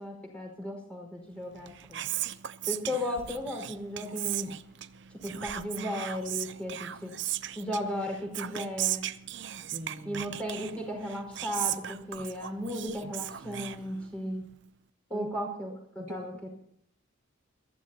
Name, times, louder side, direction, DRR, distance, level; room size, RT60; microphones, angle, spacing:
voice 1, 0.0-2.0 2.7-4.5 5.2-7.2 7.5-9.1 10.0-14.5 15.1-15.7 15.9-16.5, left 1 dB, 5° left, 0 dB, 4.9 m, -35 dB
Whispering, 1.5-14.3, right 12 dB, 55° right, 0.6 m, -37 dB
voice 2, 9.6-10.2 15.1-15.3 16.0-16.2, equal, 30° right, 1 dB, 1.5 m, -42 dB
22.5 x 15.0 x 2.9 m, 0.73 s
head